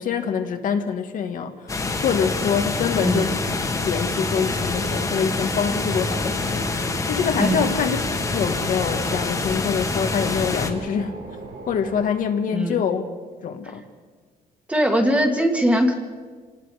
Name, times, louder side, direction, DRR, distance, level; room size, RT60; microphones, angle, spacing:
voice 1, 0.0-1.8 2.0-3.3 3.8-8.0 8.3-11.2 11.7-13.0 13.4-13.8, left 7 dB, 55° left, 6 dB, 1.5 m, -25 dB
sound 1, 1.7-10.7, left 3 dB, 20° left, 1.6 m, -26 dB
voice 2, 3.0-3.4 7.4-7.7 12.5-12.8 14.7-15.9, equal, 10° right, 4 dB, 1.9 m, -21 dB
sound 2, 4.1-12.1, right 3 dB, 80° right, 7.0 m, -39 dB
28.0 x 19.0 x 4.9 m, 1.6 s
cardioid pair, 165°, 16 cm